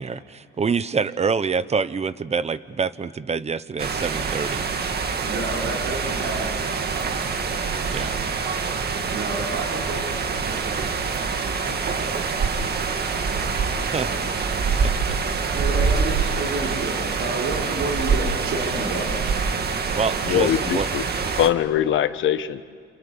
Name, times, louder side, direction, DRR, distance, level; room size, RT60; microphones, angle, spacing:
voice 1, 0.0-4.6 7.9-8.1 13.9-14.1 14.8-14.9 20.0-20.9, right 5 dB, 35° right, 15 dB, 1.0 m, -26 dB
sound 1, 3.8-21.5, right 5 dB, 55° right, 2.1 m, -25 dB
voice 2, 5.2-7.2 9.1-12.2 13.3-14.2 15.5-19.4, right 2 dB, 75° right, -2 dB, 5.4 m, -31 dB
voice 3, 20.2-21.0 21.3-22.6, left 10 dB, 75° left, 11 dB, 1.3 m, -22 dB
28.5 x 28.5 x 7.0 m, 2.1 s
cardioid pair, 90°, 20 cm